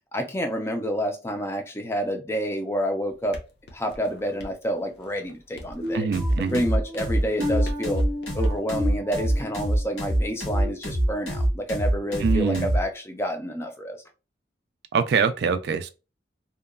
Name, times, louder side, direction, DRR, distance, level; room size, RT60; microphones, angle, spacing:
voice 1, 0.1-3.4 3.7-6.1 6.5-8.0 8.3-14.0, equal, 15° left, 0.4 m, -29 dB
sound 1, 3.1-8.6, equal, 55° left, 0.6 m, -43 dB
sound 2, 5.8-11.5 11.9-12.2 12.7-12.9, left 2 dB, 20° right, 0.7 m, -35 dB
voice 2, 5.9-6.6 12.2-12.7 14.9-15.9, right 5 dB, 55° right, 0.3 m, -24 dB
sound 3, 6.1-12.8, right 1 dB, 75° left, 1.3 m, -24 dB
2.8 x 2.2 x 2.2 m
head